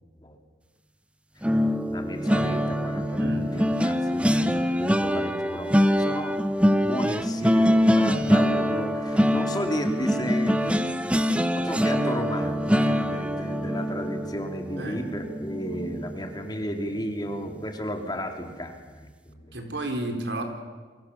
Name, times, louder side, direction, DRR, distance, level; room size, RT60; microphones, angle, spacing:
sound 1, 1.4-16.6 17.0-17.2 17.5-17.7, equal, 5° right, 0.9 m, -24 dB
voice 1, 1.9-6.4 6.8-10.9 11.6-19.6, equal, 20° left, 5 dB, 2.5 m, -34 dB
voice 2, 3.2-3.5 14.8-15.0 19.5-20.4, right 1 dB, 65° right, 5 dB, 4.1 m, -32 dB
29.0 x 23.0 x 7.1 m, 1.4 s
head